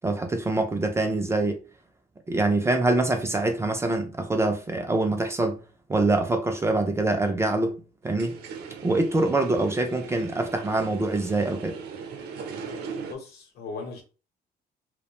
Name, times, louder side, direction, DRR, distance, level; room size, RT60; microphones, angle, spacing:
voice 1, 0.0-1.6 2.3-5.6 5.9-8.4 8.8-11.8, right 2 dB, 15° right, 0.3 m, -25 dB
sound 1, 8.0-13.1, right 5 dB, 75° right, 0.6 m, -39 dB
voice 2, 13.1-14.0, left 4 dB, 70° left, 0.9 m, -38 dB
2.4 x 2.1 x 2.9 m
cardioid pair, 145°, 17 cm